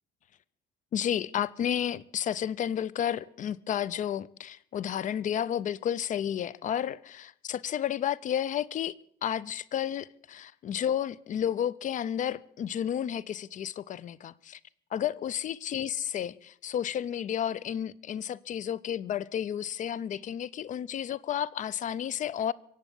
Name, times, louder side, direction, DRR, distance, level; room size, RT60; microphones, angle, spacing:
voice 1, 0.9-8.9 9.2-14.6 14.9-22.5, left 9 dB, 50° left, 22 dB, 0.6 m, -32 dB
23.5 x 8.1 x 7.1 m, 0.67 s
cardioid pair, 110°, 17 cm